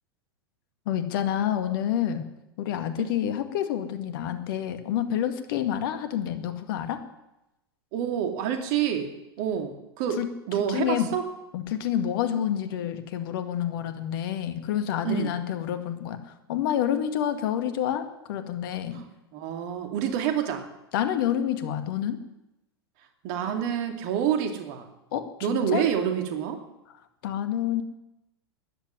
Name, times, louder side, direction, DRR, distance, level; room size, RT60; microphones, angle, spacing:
voice 1, 0.9-2.3 2.6-7.0 10.2-10.3 10.7-11.1 11.5-19.0 20.9-22.2 25.1-25.8 27.2-27.8, left 10 dB, 60° left, 8 dB, 2.0 m, -28 dB
voice 2, 7.9-9.1 9.4-10.2 10.5-11.3 15.0-15.3 18.9-20.7 23.2-24.9 25.4-26.6, right 9 dB, 50° right, 6 dB, 2.5 m, -27 dB
14.0 x 10.5 x 9.7 m, 0.93 s
hypercardioid pair, 95°, 13 cm